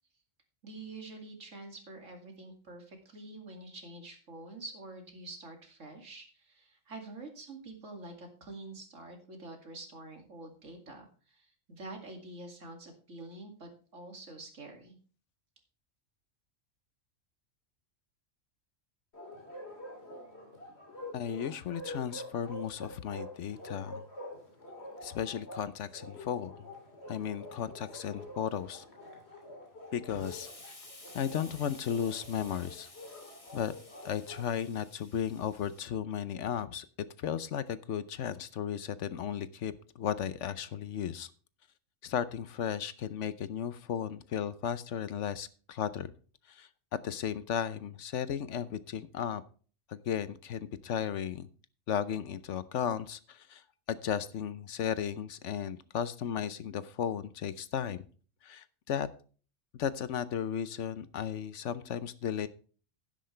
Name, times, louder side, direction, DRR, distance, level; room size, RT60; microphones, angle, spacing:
voice 1, 0.6-15.0, right 2 dB, 70° right, 3 dB, 2.7 m, -47 dB
Bark, 19.1-34.5, left 1 dB, 55° left, 3.2 m, -47 dB
voice 2, 21.1-24.0 25.0-26.6 27.1-28.8 29.9-30.7 31.1-32.9 33.5-33.7 34.0-36.9 37.2-41.3 42.0-46.1 46.5-49.4 49.9-51.5 51.9-53.6 53.9-58.1 58.4-59.1 59.7-62.5, left 8 dB, 70° left, 15 dB, 1.0 m, -35 dB
Explosion, 30.1-35.9, left 2 dB, 25° left, 1.9 m, -53 dB
12.0 x 10.5 x 3.2 m, 0.39 s
omnidirectional pair, 1.3 m